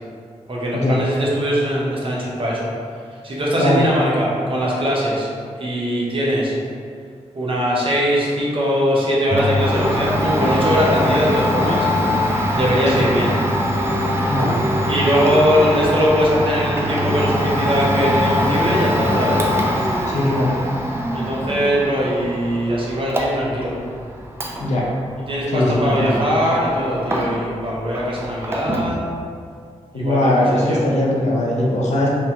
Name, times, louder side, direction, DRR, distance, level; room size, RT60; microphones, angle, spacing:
voice 1, 0.5-2.7 3.2-5.3 5.6-6.5 7.3-11.9 12.5-13.3 14.9-19.4 21.1-23.7 25.1-29.0 29.9-30.8, equal, 45° right, -5 dB, 0.7 m, -21 dB
Domestic sounds home sounds, 9.3-27.6 27.9-29.0, equal, 20° right, 0.4 m, -23 dB
voice 2, 14.3-14.6 20.1-20.6 24.6-24.9 25.5-26.2 29.9-32.1, left 1 dB, 70° left, -4 dB, 0.6 m, -19 dB
2.9 x 2.2 x 2.8 m, 2.2 s
cardioid pair, 65°, 12 cm